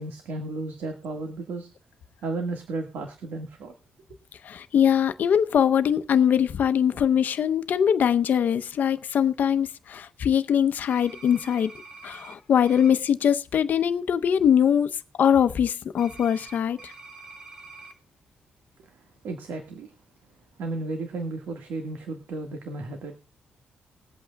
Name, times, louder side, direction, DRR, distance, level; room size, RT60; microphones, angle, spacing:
voice 1, 0.0-1.7 2.2-3.8 18.9-19.9 20.6-23.2, right 3 dB, 80° right, 1.8 m, -34 dB
voice 2, 4.4-11.7 12.0-14.9 15.2-16.9, left 8 dB, 60° left, 0.8 m, -22 dB
sound 1, 10.9-12.3 12.6-12.9 16.0-17.9, right 3 dB, 25° right, 2.2 m, -45 dB
21.5 x 8.4 x 2.3 m
cardioid pair, 130°, 3 cm